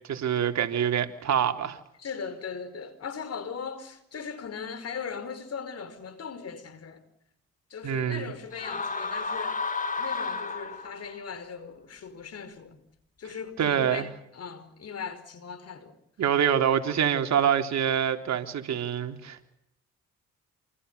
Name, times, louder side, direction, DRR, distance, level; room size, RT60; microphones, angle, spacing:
voice 1, 0.1-1.8 7.8-8.3 13.6-14.1 16.2-19.5, right 8 dB, 65° right, 3.7 m, -26 dB
voice 2, 2.0-7.0 7.7-9.6 9.9-12.8 13.2-16.0, left 6 dB, 55° left, 5.0 m, -39 dB
sound 1, 8.5-11.2, left 4 dB, 25° left, 3.1 m, -32 dB
28.5 x 28.0 x 6.9 m
cardioid pair, 90°, 30 cm